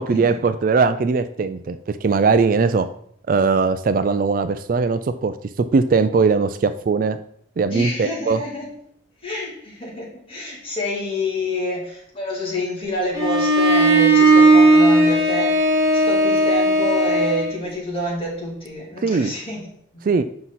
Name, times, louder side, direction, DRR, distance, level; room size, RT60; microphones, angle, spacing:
voice 1, 0.0-2.9 3.3-7.2 7.6-8.4 19.0-19.3 20.0-20.2, right 4 dB, 45° right, 11 dB, 0.3 m, -20 dB
voice 2, 7.7-8.7 9.2-15.5 15.9-20.0, left 1 dB, 30° left, -4 dB, 2.6 m, -27 dB
Bowed string instrument, 13.1-17.6, right 1 dB, 15° right, 1.5 m, -16 dB
7.6 x 5.8 x 4.1 m, 0.66 s
head